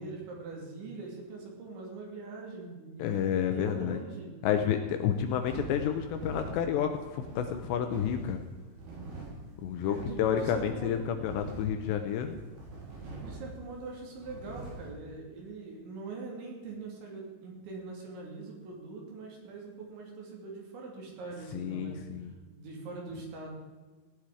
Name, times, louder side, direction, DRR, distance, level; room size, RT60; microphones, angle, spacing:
voice 1, 0.0-4.3 9.8-11.1 13.2-22.0 22.5-23.5, right 3 dB, 70° right, -1 dB, 5.1 m, -43 dB
voice 2, 3.0-4.0 4.4-8.4 9.6-12.4 21.5-22.3, left 9 dB, 80° left, 6 dB, 2.7 m, -30 dB
sound 1, 5.0-14.9, right 2 dB, 90° right, 6.8 m, -44 dB
16.0 x 10.5 x 4.9 m, 1.3 s
omnidirectional pair, 5.6 m